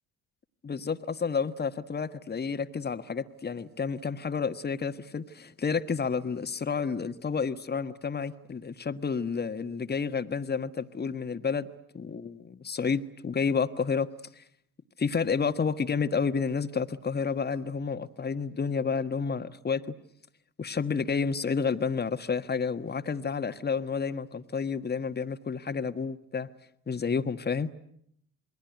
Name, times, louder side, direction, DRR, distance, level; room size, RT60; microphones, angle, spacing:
voice 1, 0.6-11.7 11.9-14.1 14.4-14.5 15.0-19.8 20.6-26.5 26.9-27.7, left 5 dB, 20° left, 10 dB, 1.5 m, -30 dB
28.0 x 21.5 x 9.3 m, 0.72 s
hypercardioid pair, 60°, 45 cm